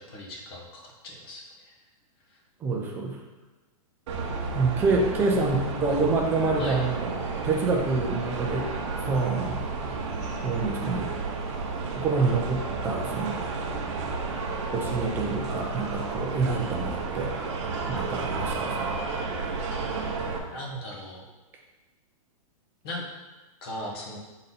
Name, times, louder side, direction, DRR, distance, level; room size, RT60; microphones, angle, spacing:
voice 1, 0.0-1.7 5.3-5.6 5.9-6.0 6.6-6.8 17.8-18.1 20.5-21.2 22.8-23.0 23.6-24.2, equal, 40° left, -1 dB, 1.5 m, -38 dB
voice 2, 2.6-3.2 4.5-7.2 7.4-8.7 9.0-9.6 10.4-11.1 11.9-13.4 14.7-17.3 17.9-19.0, right 3 dB, 10° right, 0 dB, 0.6 m, -27 dB
sound 1, 4.1-20.4, right 3 dB, 50° right, 1.0 m, -32 dB
6.6 x 4.0 x 4.1 m, 1.2 s
hypercardioid pair, 165°, 19 cm